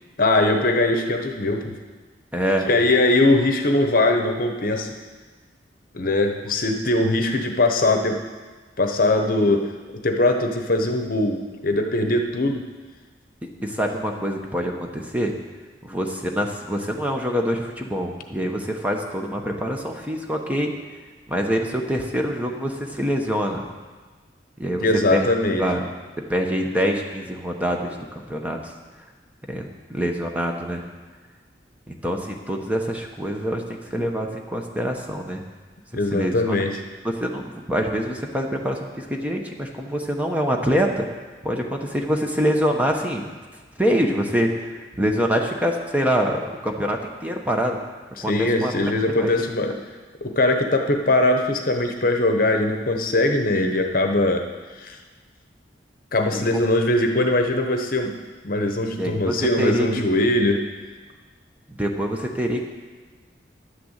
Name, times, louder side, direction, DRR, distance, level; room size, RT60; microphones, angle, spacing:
voice 1, 0.2-1.7 2.7-5.0 5.9-8.2 8.8-9.7 10.0-12.6 24.8-25.6 35.9-36.7 48.3-49.8 50.2-54.5 54.8-55.0 56.1-58.1 58.4-60.6, left 2 dB, 55° left, 5 dB, 1.0 m, -21 dB
voice 2, 2.3-2.7 13.6-15.3 15.8-20.7 21.3-23.6 24.6-25.3 25.6-25.9 26.3-28.7 29.5-30.8 31.9-35.4 36.1-36.5 37.0-41.1 41.4-43.3 43.8-47.8 48.2-49.4 49.7-49.8 56.3-56.4 58.9-60.0 61.7-62.6, equal, 10° right, 1 dB, 1.1 m, -25 dB
11.5 x 6.8 x 8.1 m, 1.4 s
head